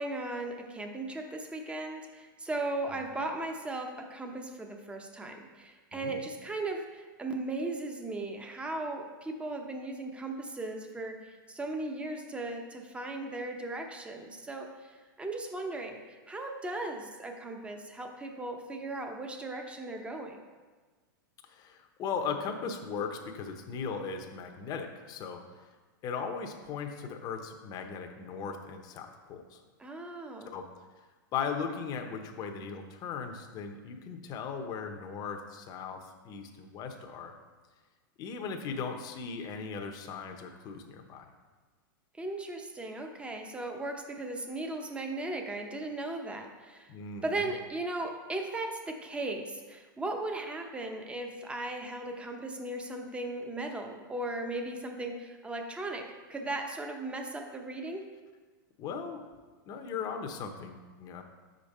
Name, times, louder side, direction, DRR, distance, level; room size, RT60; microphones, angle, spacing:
voice 1, 0.0-20.4 29.8-30.5 42.1-46.9 47.2-58.1, right 2 dB, 10° right, 3 dB, 0.7 m, -37 dB
voice 2, 5.9-6.2 21.5-25.4 26.0-29.6 30.5-30.7 31.3-37.3 38.2-41.3 46.9-47.5 58.8-59.2 59.7-61.2, left 6 dB, 35° left, 5 dB, 0.8 m, -38 dB
6.7 x 5.2 x 4.2 m, 1.3 s
hypercardioid pair, 125°, 12 cm